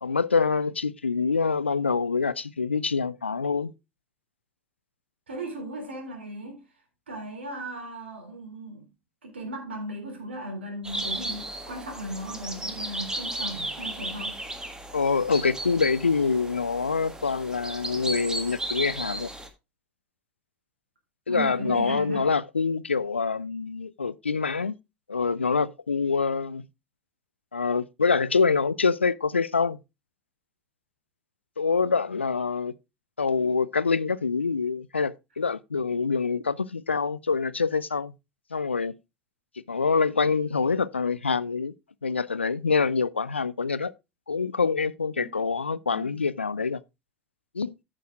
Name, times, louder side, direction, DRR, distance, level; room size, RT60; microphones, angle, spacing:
voice 1, 0.0-3.7 14.9-19.3 21.3-24.8 25.1-26.7 27.5-29.8 31.6-32.7 33.2-38.1 38.5-38.9 39.7-41.7 42.0-43.9 44.3-46.8 47.5-47.7, left 5 dB, 85° left, 0.4 m, -25 dB
voice 2, 5.3-6.6 7.1-8.9 9.2-14.4 21.3-22.3 45.2-45.3 45.9-46.2, right 1 dB, 75° right, 3.2 m, -36 dB
sound 1, 10.8-19.5, right 1 dB, 10° right, 1.6 m, -35 dB
14.5 x 6.1 x 2.4 m
figure-of-eight pair, 70°, 6 cm